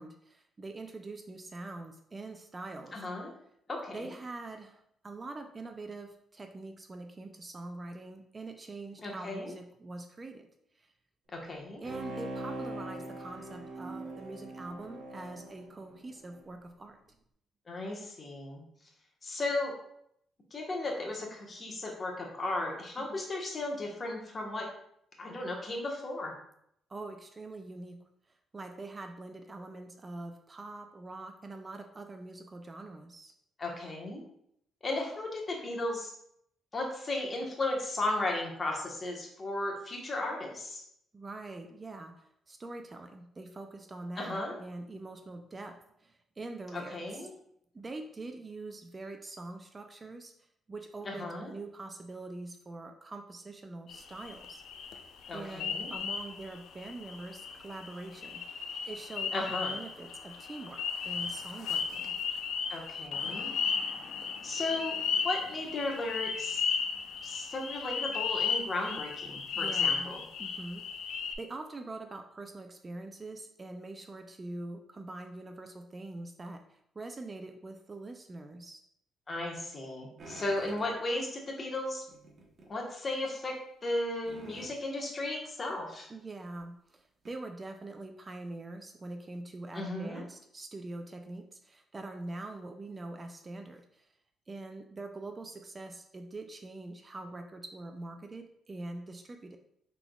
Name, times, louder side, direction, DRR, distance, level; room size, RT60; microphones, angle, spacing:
voice 1, 0.0-3.0 3.9-10.5 10.7-10.9 11.8-17.2 23.0-23.2 26.9-33.3 41.1-47.3 47.7-50.3 50.7-54.6 55.3-62.2 69.5-78.8 86.1-94.1 94.5-99.6, right 2 dB, 30° right, 5 dB, 0.4 m, -44 dB
voice 2, 2.9-3.3 3.7-4.1 9.0-9.5 11.3-11.8 17.7-18.6 19.2-19.7 20.5-24.7 25.2-26.3 33.6-34.2 34.8-36.1 36.7-40.8 44.2-44.5 46.7-47.3 51.0-51.5 55.3-55.9 59.3-59.7 62.7-63.5 64.4-65.0 65.2-66.6 67.2-70.2 79.3-82.0 82.7-83.5 83.8-86.1 89.7-90.2, left 2 dB, 35° left, 0 dB, 1.1 m, -35 dB
Bowed string instrument, 11.8-16.4 16.8-16.9, right 2 dB, 90° right, 1.3 m, -42 dB
sound 1, 53.9-71.4, left 6 dB, 75° left, 0.5 m, -35 dB
sound 2, 80.2-80.9 82.1-82.7 83.1-83.2 84.3-84.8 86.0-86.1 86.6-86.7 87.2-87.3, right 2 dB, 45° right, 1.0 m, -50 dB
5.9 x 3.5 x 2.3 m, 0.73 s
cardioid pair, 90°, 0 cm